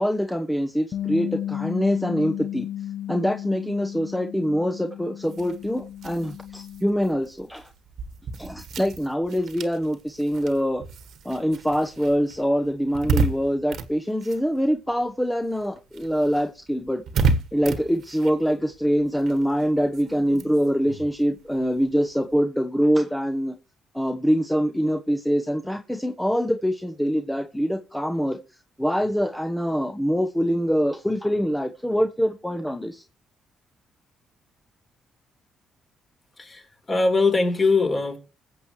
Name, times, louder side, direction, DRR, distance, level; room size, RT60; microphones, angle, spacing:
voice 1, 0.0-2.7 3.1-7.7 8.4-10.8 11.2-17.0 17.5-23.5 23.9-28.4 28.8-33.0, equal, 5° left, 1.0 m, -24 dB
Bass guitar, 0.9-7.2, left 11 dB, 50° left, 0.9 m, -34 dB
sound 1, 5.2-15.1 15.4-22.4, right 4 dB, 70° right, 1.5 m, -32 dB
voice 2, 36.4-38.2, left 3 dB, 30° left, 3.9 m, -22 dB
21.0 x 7.4 x 3.2 m
cardioid pair, 90°, 0 cm